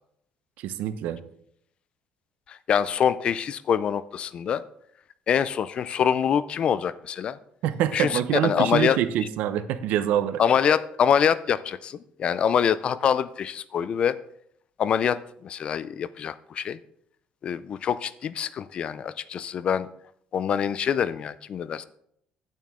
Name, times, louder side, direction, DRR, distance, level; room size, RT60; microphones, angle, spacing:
voice 1, 0.6-1.2 7.6-10.4, right 11 dB, 75° right, 11 dB, 0.7 m, -25 dB
voice 2, 2.5-4.6 5.3-7.4 7.9-9.0 10.4-14.2 14.8-16.8 17.4-19.9 20.3-21.8, left 8 dB, 40° left, 16 dB, 0.4 m, -25 dB
9.2 x 8.7 x 3.6 m, 0.72 s
cardioid pair, 145°, 3 cm